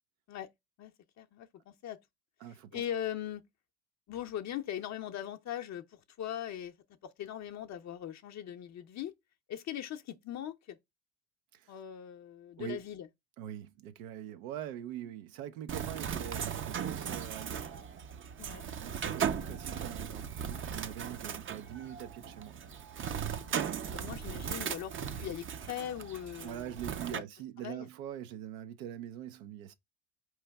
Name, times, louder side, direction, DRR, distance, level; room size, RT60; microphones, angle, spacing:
voice 1, 0.8-2.0 2.5-3.4 4.1-6.7 7.0-9.1 9.5-10.8 11.7-13.1 18.4-18.6 23.3-26.7 27.1-27.2 27.6-27.9, left 10 dB, 45° left, 0.6 m, -40 dB
voice 2, 2.4-2.8 11.5-11.7 12.6-12.8 13.4-17.7 18.8-22.6 26.4-29.7, right 11 dB, 80° right, 0.7 m, -43 dB
Bird, 15.7-27.2, right 8 dB, 30° right, 0.5 m, -37 dB
4.4 x 3.1 x 3.4 m
hypercardioid pair, 75°, 40 cm